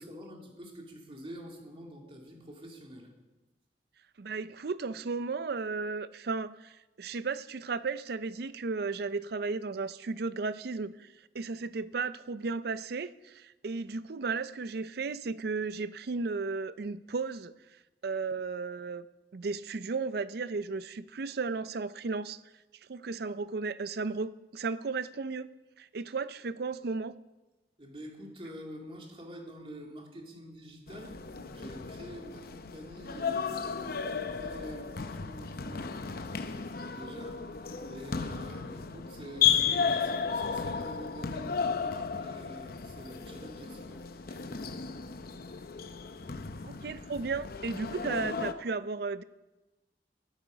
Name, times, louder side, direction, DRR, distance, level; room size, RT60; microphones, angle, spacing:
voice 1, 0.0-3.1 27.8-37.4 37.8-44.8 45.5-45.7 46.3-46.4, equal, 30° right, 1 dB, 2.4 m, -47 dB
voice 2, 4.2-17.5 18.0-19.1 19.3-22.4 22.9-25.5 25.8-27.1 46.6-49.2, right 4 dB, 60° right, 15 dB, 0.5 m, -34 dB
sound 1, 30.9-48.5, left 6 dB, 55° left, 0.7 m, -34 dB
13.0 x 12.5 x 5.1 m, 1.1 s
head